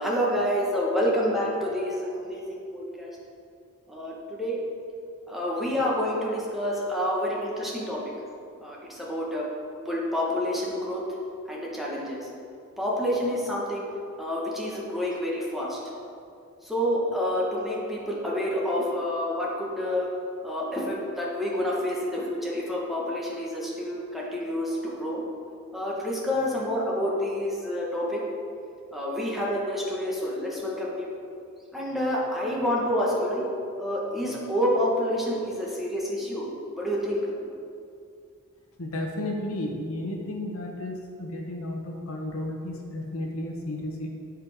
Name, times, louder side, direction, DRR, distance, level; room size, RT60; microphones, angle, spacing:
voice 1, 0.0-3.2 3.9-4.6 5.3-8.0 8.6-9.5 9.8-11.0 11.5-12.3 12.8-13.9 14.2-15.8 16.6-20.1 20.4-25.2 25.7-28.2 28.9-31.1 31.7-33.4 33.8-36.5 36.8-37.5, equal, ahead, -5 dB, 1.4 m, -28 dB
voice 2, 38.8-44.1, left 1 dB, 65° left, 1 dB, 1.1 m, -33 dB
10.5 x 5.2 x 4.9 m, 2.5 s
head